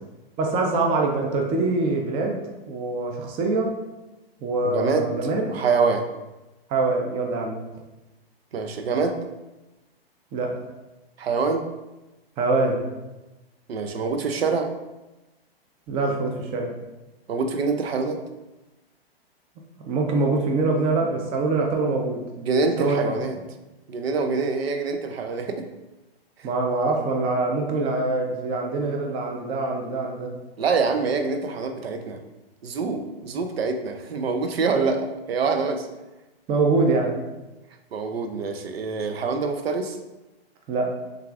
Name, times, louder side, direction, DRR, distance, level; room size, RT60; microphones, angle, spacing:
voice 1, 0.4-3.8 4.4-5.5 6.7-7.7 10.3-10.6 12.4-12.8 15.9-16.7 19.9-22.2 22.8-23.1 26.4-30.3 34.7-34.8 35.6-35.7 36.5-37.2 40.7-40.9, right 3 dB, 20° right, 2 dB, 0.4 m, -24 dB
voice 2, 4.6-5.2 5.5-6.1 8.5-9.2 11.2-11.7 13.7-14.7 17.3-18.2 22.4-23.4 23.9-25.7 30.6-32.2 32.6-35.9 37.9-40.0, right 4 dB, 75° right, 7 dB, 0.6 m, -25 dB
6.4 x 2.4 x 2.4 m, 1.1 s
hypercardioid pair, 120°, 31 cm